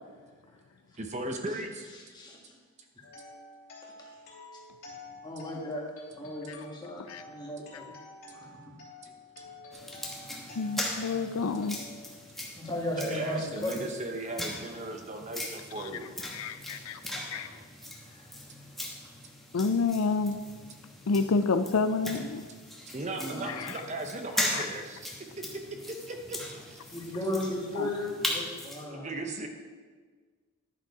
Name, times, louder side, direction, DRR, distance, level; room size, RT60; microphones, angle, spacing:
voice 1, 1.0-1.9 6.2-6.3 9.0-9.1 13.0-16.1 22.9-25.1 25.9-26.4 26.7-26.8 28.9-29.5, right 2 dB, 30° right, 4 dB, 0.8 m, -37 dB
sound 1, 3.0-12.9, left 3 dB, 45° left, 3.1 m, -50 dB
voice 2, 5.2-5.8 6.2-7.9 8.3-8.5 12.5-13.8 18.2-18.3 23.2-23.7 26.9-29.1, left 1 dB, 20° left, -2 dB, 1.6 m, -35 dB
sound 2, 9.7-28.8, left 1 dB, ahead, 1.2 m, -39 dB
voice 3, 10.6-11.8 15.8-15.9 16.3-17.0 17.3-17.5 19.5-20.4 21.1-22.4 23.4-23.8 24.5-24.7 27.7-27.9, left 4 dB, 75° left, 10 dB, 0.4 m, -29 dB
11.0 x 6.4 x 4.8 m, 1.5 s
head